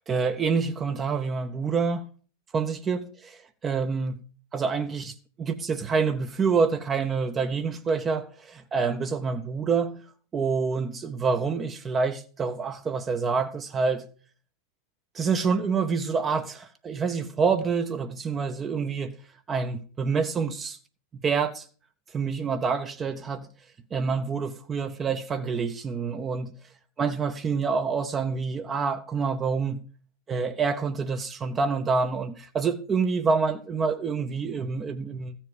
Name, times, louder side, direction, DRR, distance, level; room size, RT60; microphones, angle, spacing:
voice 1, 0.1-2.1 2.5-4.2 4.5-10.0 10.3-14.0 15.1-19.2 19.5-20.8 21.1-21.7 22.1-23.5 23.9-26.5 27.0-29.8 30.3-35.4, right 5 dB, 20° right, 0.8 m, -27 dB
14.5 x 7.3 x 5.0 m
figure-of-eight pair, 90°, 0 cm